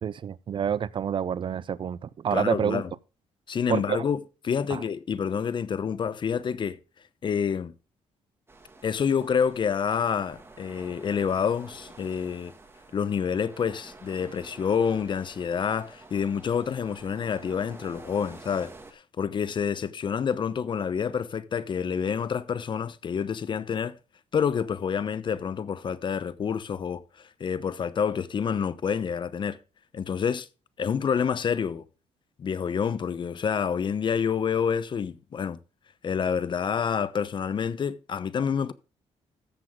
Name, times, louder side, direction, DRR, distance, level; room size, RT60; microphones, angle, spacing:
voice 1, 0.0-2.8 3.7-4.0 4.7-4.8, right 8 dB, 45° right, 0.5 m, -28 dB
voice 2, 2.3-2.9 3.5-6.8 7.2-7.7 8.8-12.5 12.9-24.0 24.3-29.6 29.9-30.5 30.8-31.8 32.4-35.6 36.0-38.7, left 7 dB, 45° left, 0.8 m, -28 dB
sound 1, 8.5-18.9, right 3 dB, 20° right, 2.1 m, -49 dB
14.0 x 7.7 x 3.7 m
cardioid pair, 105°, 12 cm